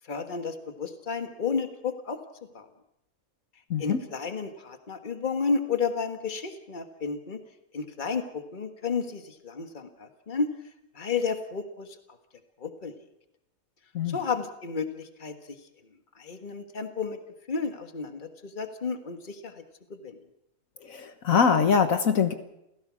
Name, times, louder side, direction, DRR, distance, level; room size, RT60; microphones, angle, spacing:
voice 1, 0.0-2.2 2.5-2.7 3.8-7.4 7.7-10.5 10.9-12.0 12.6-12.9 14.1-15.6 16.1-17.2 17.5-19.6 19.9-20.2, left 5 dB, 35° left, 7 dB, 1.7 m, -32 dB
voice 2, 3.7-4.0 13.9-14.2 20.9-22.3, left 6 dB, 70° left, 8 dB, 1.6 m, -23 dB
29.0 x 16.5 x 6.2 m, 0.85 s
omnidirectional pair, 1.5 m